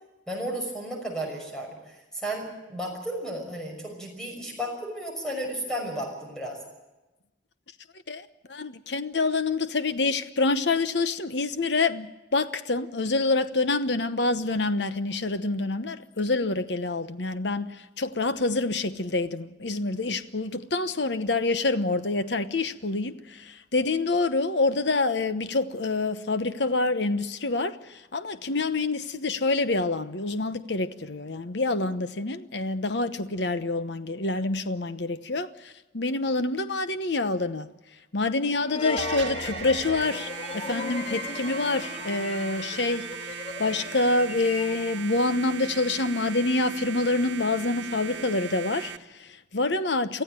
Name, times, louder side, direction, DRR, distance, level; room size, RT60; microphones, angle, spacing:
voice 1, 0.3-6.6, right 1 dB, 5° left, 5.9 m, -33 dB
voice 2, 8.1-37.7 38.1-43.3 43.6-50.2, left 3 dB, 70° left, 1.0 m, -27 dB
sound 1, 38.6-45.1, left 4 dB, 30° left, 0.7 m, -37 dB
sound 2, 39.0-49.0, right 8 dB, 90° right, 1.3 m, -38 dB
24.0 x 15.0 x 9.0 m
head